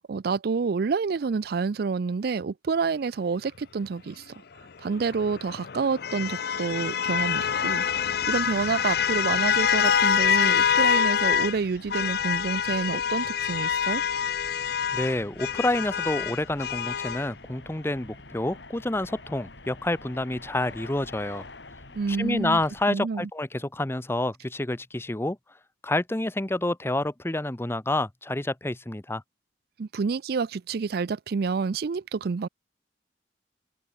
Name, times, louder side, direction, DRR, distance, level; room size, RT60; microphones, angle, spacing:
voice 1, 0.1-4.2 4.8-7.8 8.3-14.0 21.9-22.6 22.9-23.3 29.8-32.5, right 5 dB, 60° right, 0.4 m, -28 dB
sound 1, 4.9-11.6 11.9-17.3, left 8 dB, 60° left, 0.6 m, -25 dB
sound 2, 7.8-22.9, left 2 dB, 85° left, 4.7 m, -47 dB
voice 2, 14.9-21.4 22.2-25.4 25.8-29.2, left 1 dB, 15° left, 0.8 m, -28 dB
head